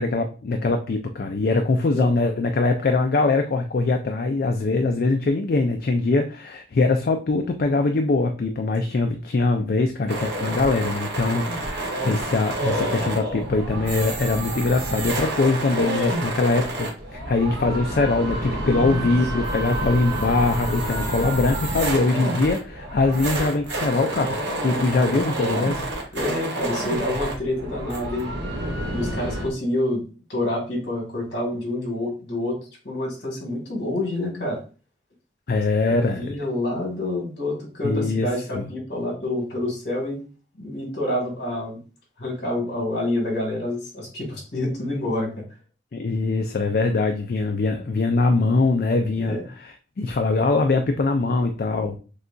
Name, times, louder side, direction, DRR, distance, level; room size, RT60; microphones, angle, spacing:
voice 1, 0.0-25.8 35.5-36.4 37.8-38.3 38.5-38.7 45.9-49.4 49.6-52.0, left 3 dB, 50° left, 5 dB, 0.4 m, -22 dB
sound 1, 10.1-29.5, right 1 dB, 70° right, 1.2 m, -29 dB
voice 2, 18.6-19.1 24.7-25.3 26.1-28.3 28.9-30.0 30.3-32.6 32.8-34.6 35.8-40.2 40.5-41.8 42.2-45.3 49.3-49.4, left 1 dB, 70° left, -1 dB, 2.1 m, -27 dB
6.5 x 2.3 x 2.5 m, 0.35 s
head